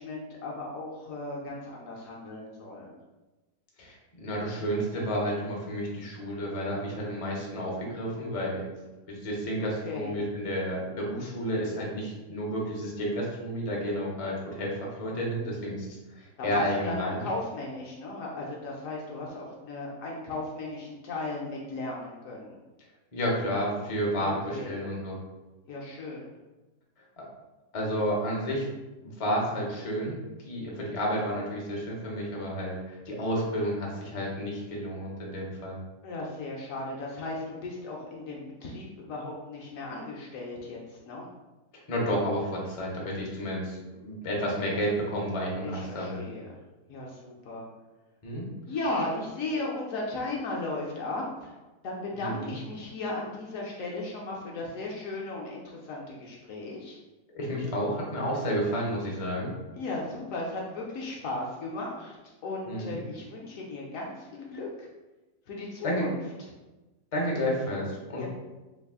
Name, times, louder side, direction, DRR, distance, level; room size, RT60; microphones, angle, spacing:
voice 1, 0.0-3.0 9.8-10.1 16.4-22.6 24.2-24.8 25.7-26.4 36.0-41.3 45.6-46.6 46.9-47.6 48.7-51.6 51.8-57.0 59.7-62.2 62.4-64.9 65.5-66.2 68.2-68.3, left 2 dB, 65° left, -2 dB, 0.8 m, -36 dB
voice 2, 3.8-8.6 9.1-17.2 23.1-25.2 27.2-27.3 27.7-28.7 29.2-35.8 41.9-46.2 48.2-48.5 52.2-52.6 57.3-59.5 62.7-63.0 65.8-66.1 67.1-68.2, equal, 45° left, -3 dB, 0.4 m, -31 dB
3.2 x 2.4 x 3.5 m, 1.1 s
omnidirectional pair, 1.7 m